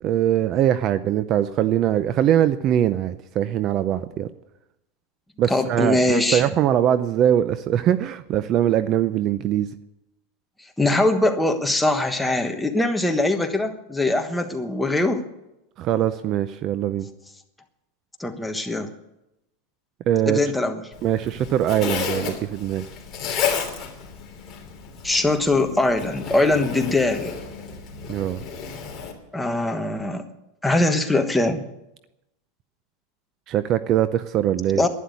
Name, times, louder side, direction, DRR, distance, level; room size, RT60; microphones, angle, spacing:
voice 1, 0.0-4.3 5.4-9.7 15.8-17.1 20.1-20.4 21.0-22.8 28.1-28.4 33.5-34.8, right 11 dB, 35° right, 14 dB, 0.6 m, -22 dB
voice 2, 5.5-6.4 10.8-15.2 18.2-18.9 20.3-20.8 25.0-27.3 29.3-30.2 30.6-31.6 34.8-34.9, left 2 dB, 5° left, 5 dB, 1.2 m, -22 dB
Zipper (clothing), 20.9-29.1, left 7 dB, 25° left, 3.1 m, -32 dB
11.5 x 10.0 x 9.6 m, 0.90 s
supercardioid pair, 150°, 0 cm